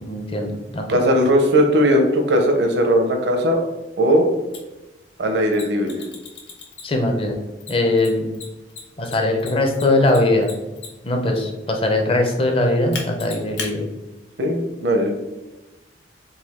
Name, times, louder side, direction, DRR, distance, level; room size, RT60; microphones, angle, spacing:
voice 1, 0.0-1.0 6.8-7.4 7.7-8.3 9.0-10.5 11.0-13.9, left 2 dB, 30° left, 3 dB, 0.6 m, -20 dB
voice 2, 0.9-3.6 4.0-4.3 5.2-6.0 14.4-15.2, equal, 70° right, 3 dB, 0.7 m, -18 dB
Mechanisms, 4.5-4.6 5.5-7.1 7.6-11.1 12.9-13.7, left 5 dB, 65° left, 0.9 m, -35 dB
3.9 x 2.6 x 4.2 m, 1.1 s
head